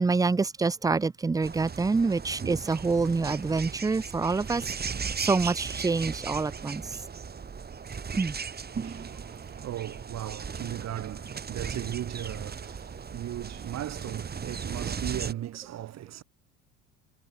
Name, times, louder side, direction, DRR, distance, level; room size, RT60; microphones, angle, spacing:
voice 1, 0.0-4.6 5.2-6.8 8.2-8.3, right 4 dB, 10° right, 0.5 m, -26 dB
sound 1, 1.4-15.3, right 6 dB, 30° right, 3.4 m, -37 dB
voice 2, 8.7-16.2, right 12 dB, 50° right, 2.9 m, -37 dB
hypercardioid pair, 80°, 33 cm